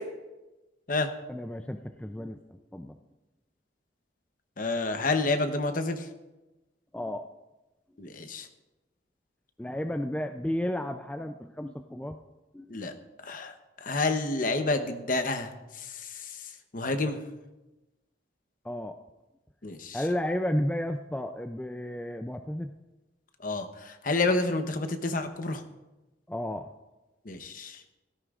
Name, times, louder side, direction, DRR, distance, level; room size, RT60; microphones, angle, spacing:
voice 1, 1.3-3.0 6.9-7.3 9.6-12.2 12.5-12.8 18.6-19.0 19.9-22.7 26.3-26.7, left 1 dB, 5° left, 5 dB, 0.3 m, -32 dB
voice 2, 4.6-6.1 8.0-8.5 12.7-12.9 13.2-13.5 13.8-16.3 16.7-17.2 19.6-20.0 23.4-25.6 27.3-27.8, left 3 dB, 45° left, 7 dB, 0.9 m, -29 dB
16.5 x 13.5 x 2.4 m, 1.1 s
head